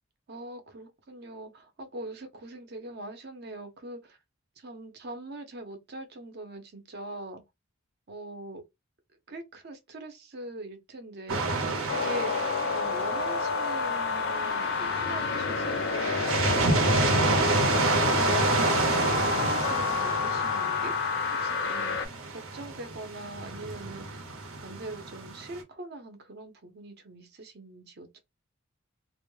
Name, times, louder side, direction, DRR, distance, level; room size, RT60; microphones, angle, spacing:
voice 1, 0.3-4.2 4.6-7.4 8.1-8.6 9.3-11.6 11.9-17.9 18.3-22.0 22.3-24.3 24.6-28.2, right 2 dB, 50° right, 0.6 m, -42 dB
sound 1, 11.3-13.6 14.3-25.6, right 3 dB, 85° right, 0.8 m, -29 dB
sound 2, 11.9-22.1, left 5 dB, 55° left, 0.5 m, -29 dB
2.2 x 2.0 x 3.1 m
head